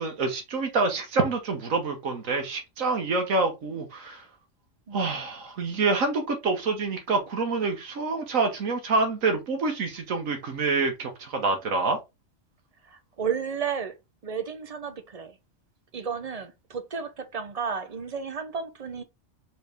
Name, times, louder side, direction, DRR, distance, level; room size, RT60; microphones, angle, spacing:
voice 1, 0.0-4.3 4.9-12.0, right 3 dB, 80° right, 1.5 m, -27 dB
voice 2, 12.9-13.9 14.2-15.3 15.9-19.0, right 6 dB, 40° right, 0.5 m, -33 dB
4.2 x 3.6 x 3.4 m
omnidirectional pair, 1.4 m